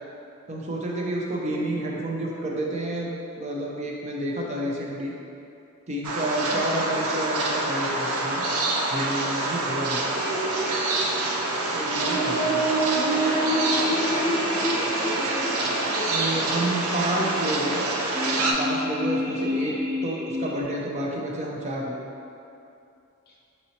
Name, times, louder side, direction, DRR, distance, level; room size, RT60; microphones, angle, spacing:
voice 1, 0.5-5.1 5.9-8.4 8.9-10.0 11.7-12.6 16.1-17.8 18.4-19.7 20.0-22.0, right 1 dB, 30° right, -2 dB, 0.4 m, -29 dB
voice 2, 1.4-2.0 6.4-6.8 12.0-12.6 12.9-17.6 19.3-19.9 23.3-23.4, equal, 45° left, -3 dB, 0.6 m, -36 dB
sound 1, 6.0-18.5, right 2 dB, 90° right, 0.5 m, -27 dB
sound 2, 10.1-20.6, equal, 5° right, 1.0 m, -29 dB
4.2 x 4.1 x 2.8 m, 2.7 s
head